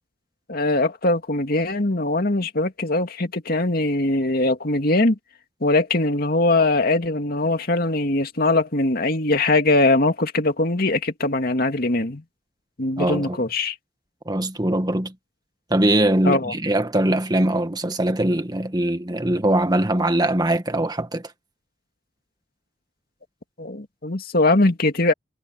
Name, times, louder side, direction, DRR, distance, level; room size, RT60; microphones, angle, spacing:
voice 1, 0.5-5.2 5.6-12.2 12.8-13.7 16.2-16.5 23.6-25.1, left 2 dB, 55° left, 2.4 m, -21 dB
voice 2, 13.0-13.4 14.2-15.1 15.7-21.3, right 1 dB, 20° right, 1.7 m, -22 dB
head